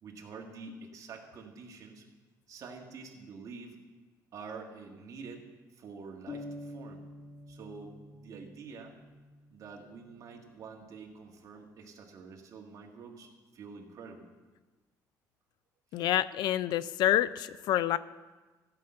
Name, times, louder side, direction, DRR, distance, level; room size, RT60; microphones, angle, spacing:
voice 1, 0.0-2.1 2.5-3.8 4.3-5.5 5.7-7.0 7.5-9.0 9.5-13.3 13.5-14.3 15.9-16.1, right 4 dB, 50° right, 1 dB, 1.8 m, -47 dB
sound 1, 6.3-10.0, left 2 dB, 40° left, 1.3 m, -47 dB
voice 2, 15.9-18.0, left 13 dB, 75° left, 16 dB, 0.4 m, -27 dB
14.5 x 5.8 x 7.8 m, 1.2 s
cardioid pair, 135°, 7 cm